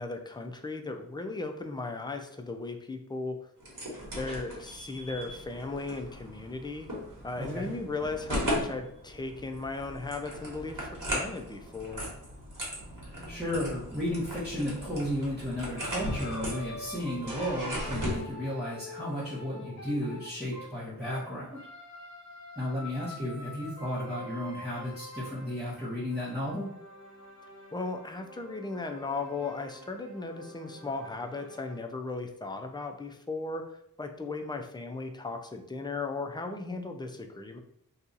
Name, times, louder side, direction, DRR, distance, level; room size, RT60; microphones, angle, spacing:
voice 1, 0.0-3.4 4.1-6.9 7.2-12.1 27.7-37.6, left 3 dB, 15° left, 4 dB, 0.4 m, -36 dB
sound 1, 3.6-18.2, equal, 65° right, 1.2 m, -37 dB
voice 2, 7.4-7.7 13.1-21.6 22.6-26.7, left 1 dB, 5° right, -10 dB, 1.0 m, -34 dB
sound 2, 15.8-21.3 21.5-31.8, left 1 dB, 55° left, 1.1 m, -46 dB
2.8 x 2.3 x 3.9 m, 0.71 s
wide cardioid pair, 60°, 35 cm